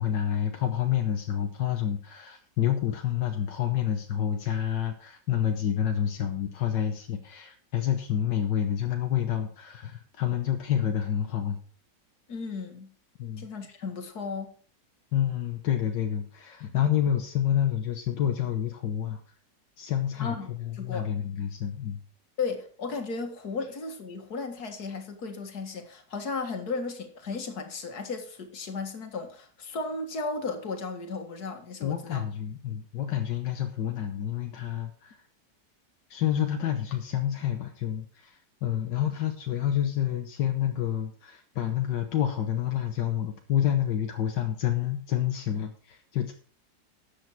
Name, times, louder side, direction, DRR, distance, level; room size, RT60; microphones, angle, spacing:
voice 1, 0.0-11.6 13.2-13.5 15.1-19.2 19.8-22.0 31.8-35.2 36.1-46.3, left 10 dB, 80° left, 5 dB, 1.7 m, -28 dB
voice 2, 12.3-12.9 13.4-14.5 20.2-21.1 22.4-32.3, left 4 dB, 60° left, 6 dB, 2.2 m, -35 dB
13.0 x 8.6 x 4.5 m, 0.43 s
omnidirectional pair, 1.9 m